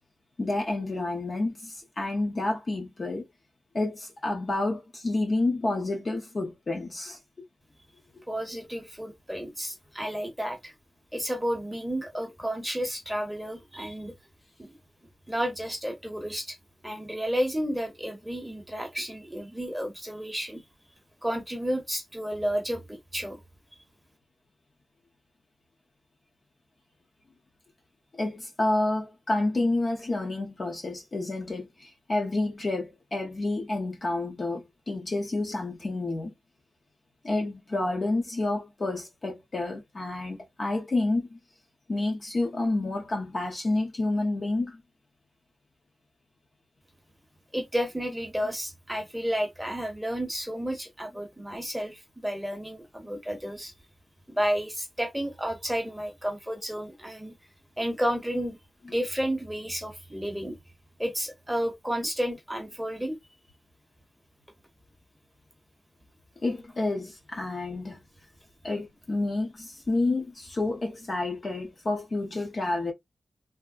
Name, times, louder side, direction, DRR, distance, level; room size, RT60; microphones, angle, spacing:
voice 1, 0.4-3.2 3.7-7.2 28.2-36.3 37.2-41.4 41.9-44.8 66.4-68.0 68.6-72.9, left 2 dB, 35° left, 0.8 m, -29 dB
voice 2, 8.3-10.7 11.1-14.1 14.6-14.8 15.3-16.6 16.8-20.6 21.2-23.4 47.5-53.7 54.3-57.3 57.8-58.6 58.9-60.6 61.0-63.2, equal, 5° right, 0.9 m, -31 dB
3.4 x 2.0 x 2.4 m
wide cardioid pair, 170°, 0 cm